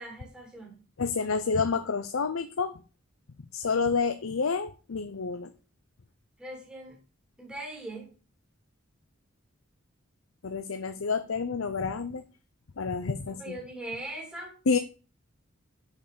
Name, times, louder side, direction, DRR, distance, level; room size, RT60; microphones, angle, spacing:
voice 1, 0.0-0.8 6.4-7.0 7.4-8.1 13.2-14.6, right 1 dB, 5° right, -3 dB, 3.1 m, -40 dB
voice 2, 1.0-2.7 3.5-5.5 10.4-12.2 12.8-13.5 14.7-14.8, left 5 dB, 80° left, 10 dB, 0.7 m, -29 dB
6.8 x 5.7 x 6.7 m, 0.36 s
head